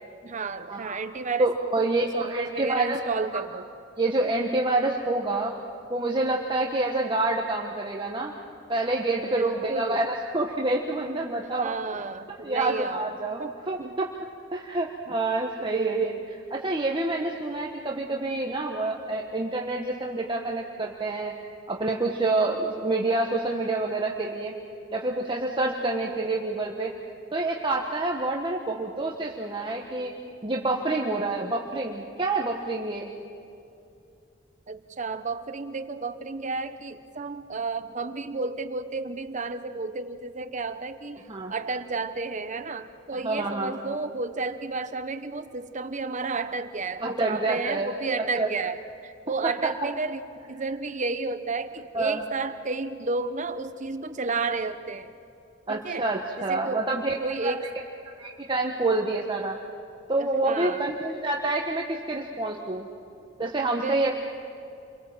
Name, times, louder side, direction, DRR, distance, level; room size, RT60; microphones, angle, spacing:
voice 1, 0.2-3.7 9.3-10.0 11.5-13.1 13.4-13.5 13.8-14.0 15.6-16.2 26.0-26.3 34.7-41.2 41.5-50.2 50.5-55.1 55.7-56.1 56.4-56.9 57.2-57.6 60.2-60.8 63.8-64.1, right 3 dB, 40° right, 10 dB, 0.9 m, -32 dB
voice 2, 1.4-3.0 3.3-3.4 4.0-5.5 5.9-8.3 8.7-11.7 12.4-14.1 14.5-16.1 16.5-21.3 21.7-24.5 24.9-26.9 27.3-30.1 30.4-33.1 41.3-41.5 43.2-43.9 47.0-47.9 48.4-48.5 51.9-52.2 55.7-57.1 57.4-57.5 58.2-59.6 60.1-62.9 63.4-64.1, right 2 dB, 25° right, 0 dB, 1.4 m, -27 dB
29.5 x 23.0 x 7.5 m, 2.6 s
head